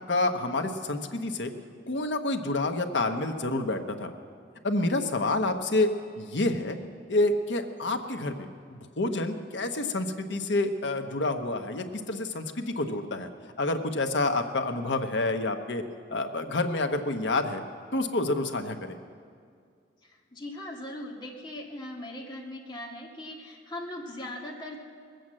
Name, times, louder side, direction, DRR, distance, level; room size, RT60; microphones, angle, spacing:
voice 1, 0.1-1.5 1.9-4.1 4.6-5.9 6.2-6.8 7.1-13.3 13.6-15.8 16.1-17.6 17.9-19.0, left 2 dB, 75° left, 6 dB, 1.0 m, -28 dB
voice 2, 20.0-24.8, left 1 dB, 25° left, -2 dB, 1.8 m, -39 dB
20.0 x 8.0 x 7.6 m, 2.2 s
head